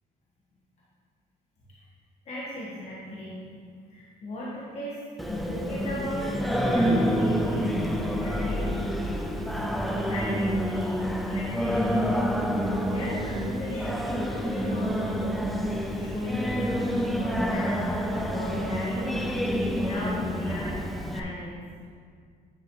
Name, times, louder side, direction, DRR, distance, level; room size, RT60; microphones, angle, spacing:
voice 1, 2.2-6.3 6.6-8.8 10.1-15.6 15.9-19.1 19.8-20.8 21.1-21.6, left 1 dB, 40° left, -7 dB, 1.5 m, -36 dB
Singing, 5.2-21.2, equal, ahead, 0.6 m, -28 dB
9.6 x 6.3 x 3.2 m, 2.1 s
cardioid pair, 110°, 17 cm